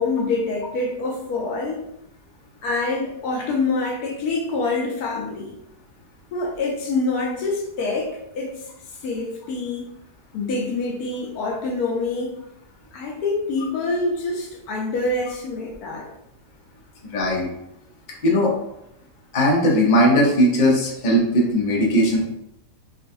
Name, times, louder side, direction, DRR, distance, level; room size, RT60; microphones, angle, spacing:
voice 1, 0.0-1.9 2.6-5.6 6.3-8.7 9.0-9.9 10.3-12.4 12.9-16.1, left 3 dB, 70° left, 1 dB, 1.1 m, -26 dB
voice 2, 17.1-17.5 18.2-18.5 19.3-22.2, equal, 45° left, -3 dB, 0.6 m, -18 dB
3.7 x 2.4 x 2.6 m, 0.83 s
omnidirectional pair, 1.7 m